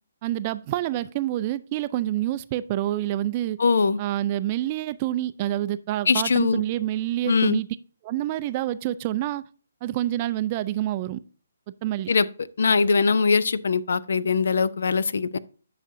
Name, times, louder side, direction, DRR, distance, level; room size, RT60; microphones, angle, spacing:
voice 1, 0.2-3.6 4.0-7.7 8.0-9.4 9.8-11.2 11.8-12.1, right 14 dB, 30° right, 0.4 m, -27 dB
voice 2, 3.6-4.0 6.1-6.6 7.3-7.6 12.1-12.3 12.6-15.4, left 4 dB, 65° left, 0.5 m, -21 dB
9.9 x 5.8 x 2.6 m
figure-of-eight pair, 145°, 0 cm